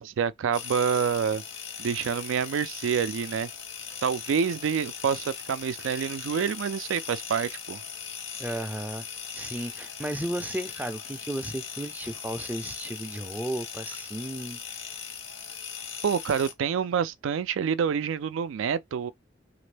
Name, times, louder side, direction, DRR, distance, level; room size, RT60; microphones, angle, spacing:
voice 1, 0.0-1.4 1.8-3.5 4.0-7.8 16.0-19.1, right 7 dB, 80° right, 0.4 m, -27 dB
sound 1, 0.5-16.5, left 7 dB, 80° left, 1.0 m, -39 dB
voice 2, 8.4-9.0 9.3-14.8, right 1 dB, 10° right, 0.4 m, -34 dB
3.0 x 2.5 x 3.2 m
head